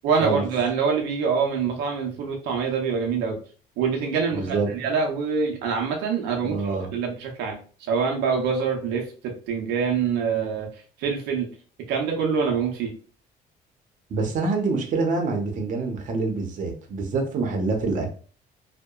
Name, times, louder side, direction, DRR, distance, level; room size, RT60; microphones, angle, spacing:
voice 1, 0.0-3.4 3.8-11.5 11.9-12.9, right 5 dB, 90° right, 1 dB, 0.6 m, -25 dB
voice 2, 4.3-4.7 6.4-6.9 14.1-18.1, right 3 dB, 50° right, 2 dB, 0.7 m, -26 dB
2.7 x 2.1 x 2.3 m, 0.40 s
cardioid pair, 110°, 17 cm